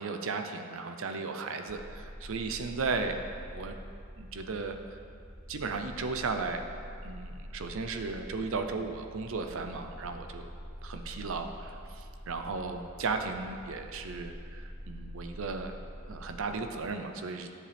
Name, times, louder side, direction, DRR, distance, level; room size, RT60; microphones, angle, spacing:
voice 1, 0.0-3.2 3.5-3.8 4.2-5.0 5.5-6.6 7.0-10.5 10.8-15.7 16.1-17.5, right 4 dB, 65° right, 6 dB, 0.6 m, -35 dB
sound 1, 1.7-16.9, equal, 5° right, 0.5 m, -46 dB
11.5 x 7.4 x 3.4 m, 2.3 s
head